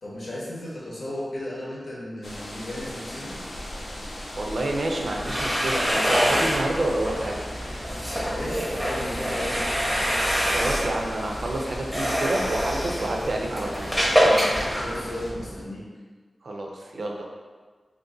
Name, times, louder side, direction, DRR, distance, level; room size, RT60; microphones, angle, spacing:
voice 1, 0.0-3.4 8.3-9.8 14.8-15.9, left 1 dB, 85° left, -7 dB, 1.0 m, -34 dB
sound 1, 2.2-15.3, left 1 dB, 60° left, 0.5 m, -38 dB
voice 2, 4.4-7.4 10.5-13.9 14.2-14.5 16.4-17.2, right 1 dB, 60° right, 0 dB, 0.4 m, -29 dB
sound 2, 5.0-15.6, equal, ahead, 0.7 m, -26 dB
2.6 x 2.5 x 3.7 m, 1.5 s
wide cardioid pair, 120°, 0 cm